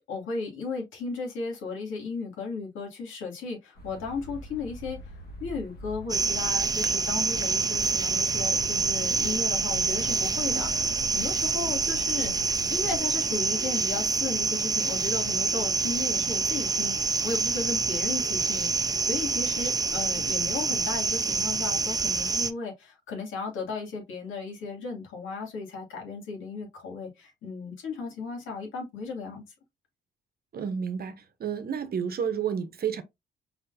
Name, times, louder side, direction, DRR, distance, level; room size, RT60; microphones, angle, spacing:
voice 1, 0.1-5.0 5.4-12.3 12.7-29.4, left 4 dB, 80° left, 2.4 m, -35 dB
sound 1, 3.7-13.0, equal, 55° left, 1.5 m, -43 dB
sound 2, 6.1-22.5, right 4 dB, 20° right, 0.5 m, -27 dB
voice 2, 30.5-33.0, right 7 dB, 50° right, 0.9 m, -31 dB
4.7 x 3.7 x 2.7 m
cardioid pair, 90°, 20 cm